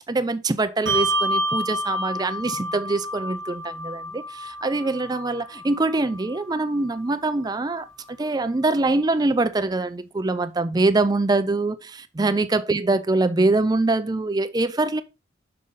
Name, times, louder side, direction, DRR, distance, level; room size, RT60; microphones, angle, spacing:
voice 1, 0.1-15.0, right 2 dB, 20° right, 0.4 m, -24 dB
Bell, 0.9-7.7, right 1 dB, 65° right, 1.2 m, -29 dB
6.3 x 5.5 x 4.0 m
head